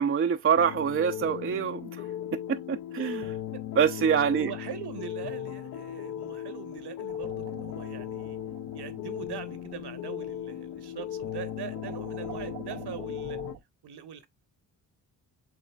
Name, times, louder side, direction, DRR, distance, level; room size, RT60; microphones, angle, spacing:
voice 1, 0.0-1.9 2.5-3.4 3.8-4.5, right 7 dB, 30° right, 0.5 m, -25 dB
sound 1, 0.6-13.6, left 11 dB, 40° left, 0.4 m, -37 dB
voice 2, 4.4-8.4 8.7-13.4 13.8-14.3, right 9 dB, 55° right, 1.0 m, -42 dB
sound 2, 7.1-13.6, right 10 dB, 90° right, 0.8 m, -47 dB
7.4 x 2.9 x 2.2 m
hypercardioid pair, 45°, 47 cm